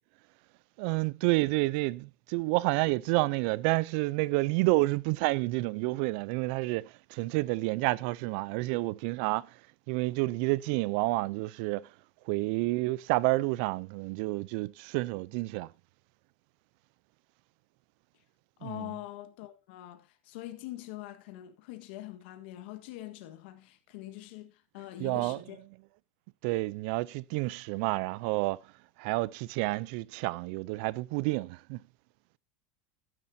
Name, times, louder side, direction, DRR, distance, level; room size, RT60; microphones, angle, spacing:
voice 1, 0.8-9.5 9.9-11.9 12.3-15.7 18.6-18.9 25.0-25.7 26.4-28.6 29.0-31.8, right 22 dB, 60° right, 0.5 m, -29 dB
voice 2, 18.6-25.6, left 15 dB, 70° left, 1.6 m, -44 dB
12.0 x 11.0 x 2.8 m
supercardioid pair, 135°, 6 cm